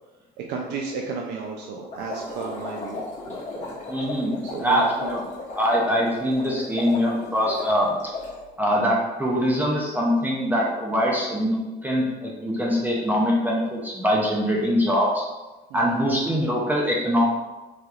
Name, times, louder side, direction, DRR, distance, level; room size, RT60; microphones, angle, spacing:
voice 1, 0.5-3.0 3.3-3.7 4.5-5.1 15.7-16.0, right 5 dB, 85° right, 0 dB, 0.4 m, -33 dB
sound 1, 1.9-8.4, left 3 dB, 45° left, 1.0 m, -35 dB
voice 2, 3.9-5.2 5.5-8.0 8.6-15.2 15.7-17.3, equal, 10° right, -4 dB, 0.5 m, -23 dB
3.3 x 2.7 x 2.4 m, 1.1 s
cardioid pair, 110°, 17 cm